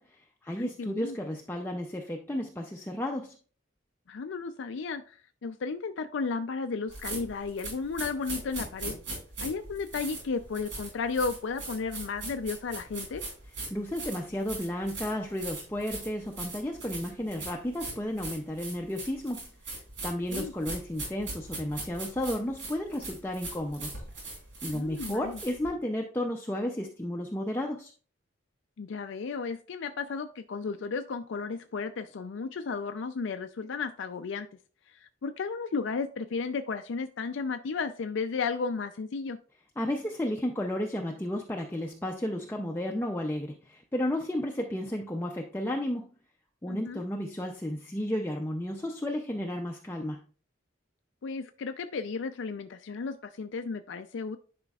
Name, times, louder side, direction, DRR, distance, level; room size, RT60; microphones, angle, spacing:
voice 1, 0.0-3.4 13.7-24.0 24.6-27.9 39.8-46.1 46.6-50.2, left 1 dB, 10° left, 1 dB, 0.5 m, -33 dB
voice 2, 0.5-1.2 4.1-9.0 9.4-13.2 20.3-20.5 24.7-25.4 28.8-34.5 34.9-39.4 46.7-47.0 51.2-54.4, left 4 dB, 75° left, 8 dB, 0.4 m, -34 dB
sound 1, 6.9-25.7, right 3 dB, 70° right, 3.8 m, -40 dB
10.5 x 5.0 x 2.3 m, 0.40 s
head